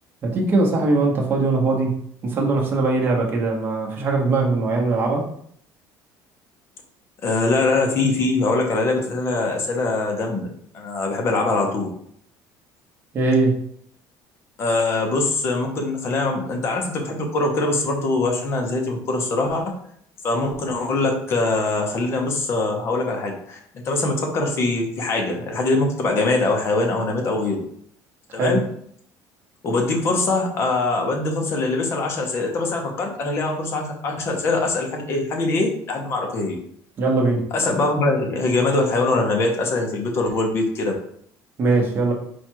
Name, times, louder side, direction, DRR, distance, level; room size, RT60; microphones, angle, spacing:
voice 1, 0.2-1.9 2.2-5.2 13.1-13.6 28.3-28.6 37.0-37.5 41.6-42.1, right 3 dB, 30° right, 0 dB, 0.9 m, -20 dB
voice 2, 7.2-10.5 10.7-11.9 14.6-19.6 20.2-23.6 23.8-27.6 28.3-28.6 29.6-36.6 37.5-40.9, left 2 dB, 35° left, 2 dB, 0.8 m, -22 dB
4.4 x 2.4 x 4.5 m, 0.66 s
cardioid pair, 165°, 7 cm